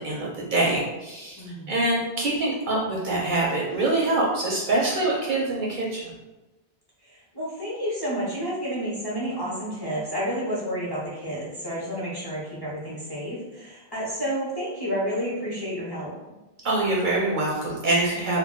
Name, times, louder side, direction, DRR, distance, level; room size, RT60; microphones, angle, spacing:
voice 1, 0.0-6.1 16.6-18.4, right 2 dB, 60° right, -3 dB, 0.6 m, -25 dB
voice 2, 1.4-1.9 7.0-16.1, equal, 25° left, -8 dB, 0.6 m, -30 dB
2.2 x 2.2 x 3.6 m, 1.1 s
omnidirectional pair, 1.1 m